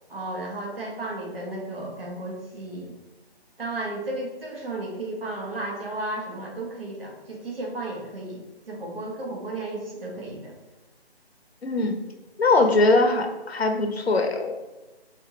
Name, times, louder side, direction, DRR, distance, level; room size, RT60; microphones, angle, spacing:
voice 1, 0.1-2.9 3.6-10.5, right 2 dB, 60° right, -2 dB, 1.4 m, -34 dB
voice 2, 11.6-12.0 12.4-14.5, left 2 dB, 75° left, 5 dB, 0.8 m, -21 dB
5.0 x 2.6 x 2.8 m, 1.1 s
figure-of-eight pair, 160°, 32 cm